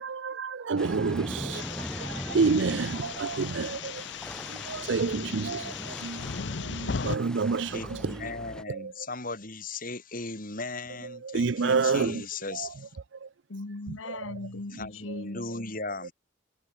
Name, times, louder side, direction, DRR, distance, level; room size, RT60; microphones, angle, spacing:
voice 1, 0.0-4.0 4.5-6.2 6.6-8.1 11.2-12.2 12.5-12.7 13.2-13.3 14.1-14.2, right 4 dB, 65° right, 0.5 m, -29 dB
sound 1, 0.8-8.6, equal, 5° left, 0.7 m, -40 dB
rolling thunder, 1.5-7.2, left 5 dB, 60° left, 0.7 m, -37 dB
voice 2, 7.0-13.0 14.7-16.1, left 3 dB, 45° left, 6.5 m, -38 dB
voice 3, 13.5-15.8, left 2 dB, 90° left, 1.2 m, -39 dB
head